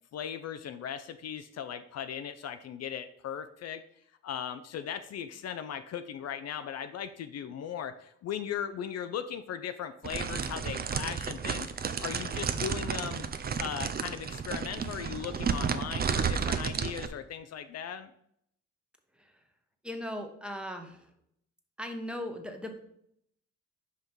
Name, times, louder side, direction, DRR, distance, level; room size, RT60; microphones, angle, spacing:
voice 1, 0.1-3.8 4.2-11.7 12.0-13.3 13.6-18.1, left 8 dB, 55° left, 10 dB, 0.5 m, -38 dB
sound 1, 10.0-17.1, right 6 dB, 30° right, 0.5 m, -32 dB
voice 2, 19.8-21.0 21.8-22.8, left 1 dB, 5° right, 4 dB, 1.0 m, -38 dB
5.6 x 5.1 x 4.5 m, 0.72 s
cardioid pair, 90°, 30 cm